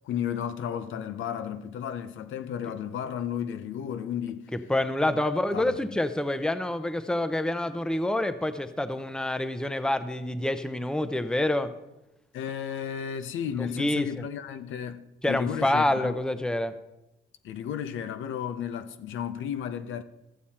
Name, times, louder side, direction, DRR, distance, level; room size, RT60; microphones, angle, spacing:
voice 1, 0.0-4.5 5.2-5.7 12.3-16.2 17.4-20.0, left 8 dB, 80° left, 0.7 m, -33 dB
voice 2, 4.5-11.7 13.6-14.3 15.2-16.7, left 1 dB, 5° left, 0.7 m, -27 dB
14.0 x 7.2 x 4.3 m
cardioid pair, 90°, 20 cm